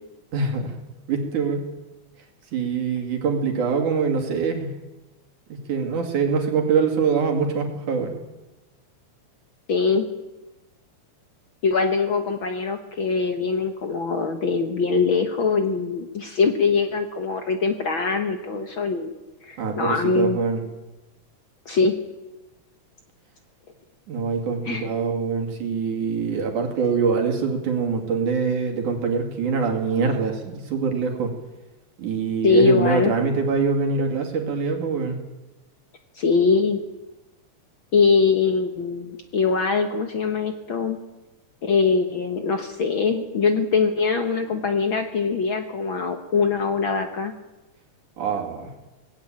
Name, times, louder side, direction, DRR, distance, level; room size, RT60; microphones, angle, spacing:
voice 1, 0.3-0.8 1.1-1.6 2.5-4.7 5.5-8.2 19.6-20.6 24.1-31.3 32.0-35.2 48.2-48.7, right 5 dB, 75° right, 3 dB, 3.9 m, -24 dB
voice 2, 9.7-10.1 11.6-19.1 19.4-20.4 21.6-21.9 24.6-24.9 32.4-33.1 36.1-36.8 37.9-41.0 41.6-47.3, left 4 dB, 55° left, 7 dB, 1.5 m, -22 dB
19.0 x 16.5 x 8.8 m, 1.1 s
omnidirectional pair, 3.6 m